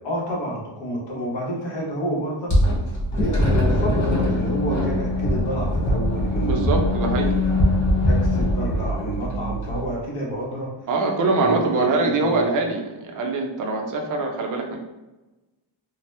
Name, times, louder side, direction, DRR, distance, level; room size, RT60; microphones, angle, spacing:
voice 1, 0.0-2.5 3.1-7.5 8.1-10.7 11.4-12.7, right 1 dB, 60° left, -3 dB, 1.0 m, -29 dB
sound 1, 2.5-9.8, left 1 dB, 35° left, 1.2 m, -22 dB
voice 2, 6.4-7.3 10.9-14.8, right 3 dB, 45° right, 2 dB, 0.4 m, -23 dB
2.8 x 2.1 x 3.1 m, 1.1 s
wide cardioid pair, 180°, 49 cm